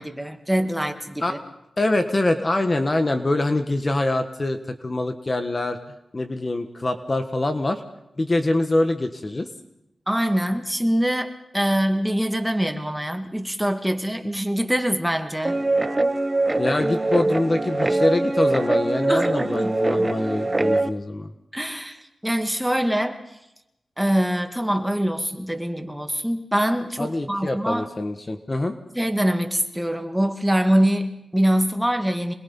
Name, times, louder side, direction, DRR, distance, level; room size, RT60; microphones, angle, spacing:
voice 1, 0.0-1.4 10.1-15.6 19.1-19.7 21.5-23.2 24.0-27.9 29.0-32.3, equal, 5° right, 5 dB, 2.1 m, -24 dB
voice 2, 1.8-5.8 6.1-7.8 8.2-9.5 16.6-21.3 27.0-28.7, left 2 dB, 35° left, 7 dB, 1.4 m, -24 dB
Guitar, 15.4-20.9, right 2 dB, 25° right, 1.0 m, -23 dB
26.5 x 21.0 x 5.5 m, 0.85 s
wide cardioid pair, 75°, 0 cm